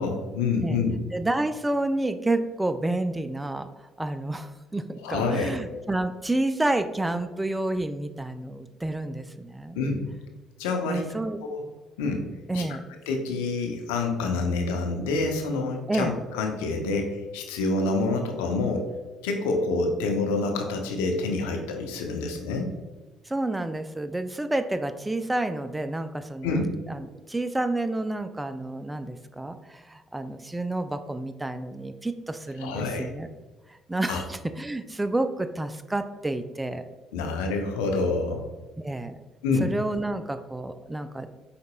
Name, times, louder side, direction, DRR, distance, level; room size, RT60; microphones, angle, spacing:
voice 1, 0.0-1.0 5.0-5.5 9.7-10.0 10.6-11.1 11.4-11.6 12.0-12.3 12.5-12.7 13.1-18.9 19.2-22.7 26.4-26.6 32.6-33.1 34.1-34.2 37.1-38.5 39.4-39.7, left 3 dB, 80° left, 3 dB, 0.6 m, -27 dB
voice 2, 1.1-3.7 4.0-9.8 10.9-11.4 12.5-12.8 15.9-16.1 23.3-26.6 26.9-33.3 33.7-36.8 38.8-39.2 39.6-41.4, right 2 dB, 15° right, 10 dB, 0.3 m, -29 dB
5.0 x 4.0 x 2.2 m, 1.2 s
hypercardioid pair, 55°, 0 cm